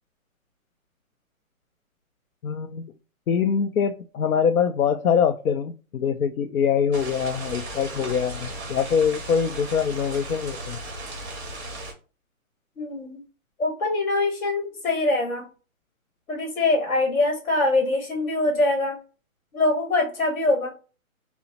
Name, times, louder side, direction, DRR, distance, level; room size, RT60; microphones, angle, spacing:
voice 1, 2.4-2.9 3.3-10.8, left 7 dB, 85° left, 7 dB, 0.5 m, -24 dB
sound 1, 6.9-11.9, right 2 dB, 10° right, 0.6 m, -36 dB
voice 2, 12.8-13.2 13.6-15.4 16.3-19.0 19.5-20.7, left 2 dB, 55° left, 2 dB, 1.3 m, -23 dB
5.0 x 2.0 x 2.8 m, 0.35 s
hypercardioid pair, 155°, 42 cm